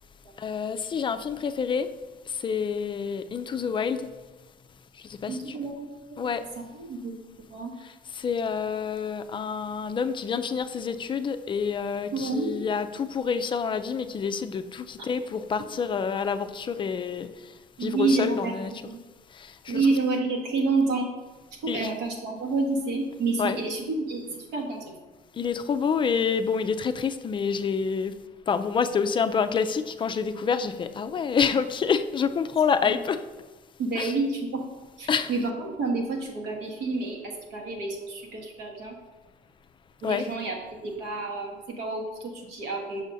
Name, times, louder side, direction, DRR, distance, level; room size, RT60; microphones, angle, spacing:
voice 1, 0.4-1.9 2.3-4.1 5.0-5.6 6.2-6.5 7.8-17.5 17.8-18.7 19.3-20.0 21.7-21.9 23.4-23.6 25.3-28.1 28.5-33.3 34.0-34.1 35.1-35.3 40.0-40.3, left 6 dB, 30° left, 0.4 m, -28 dB
voice 2, 5.3-6.3 6.8-7.1 7.5-7.7 12.1-12.5 17.8-18.5 19.7-21.1 21.6-24.9 32.8-33.0 33.8-34.6 35.0-38.9 40.0-40.6 40.8-43.1, right 3 dB, 85° right, 1.3 m, -29 dB
6.3 x 6.2 x 2.6 m
cardioid pair, 110°, 17 cm